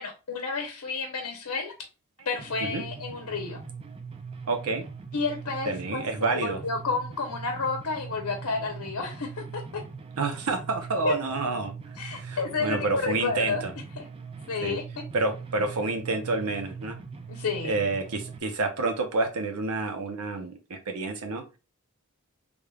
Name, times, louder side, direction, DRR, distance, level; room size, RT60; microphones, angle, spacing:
voice 1, 0.0-1.7 2.2-3.6 5.1-9.8 11.0-11.1 12.0-13.6 14.0-14.1 14.5-14.8 17.3-17.8, left 4 dB, 85° left, 0.7 m, -31 dB
sound 1, 2.4-18.4, right 5 dB, 25° right, 0.3 m, -41 dB
voice 2, 4.5-4.8 5.7-6.6 10.2-11.7 12.1-13.7 14.6-14.8 15.1-17.0 17.6-21.4, right 3 dB, 85° right, 0.8 m, -29 dB
3.5 x 3.3 x 2.3 m
head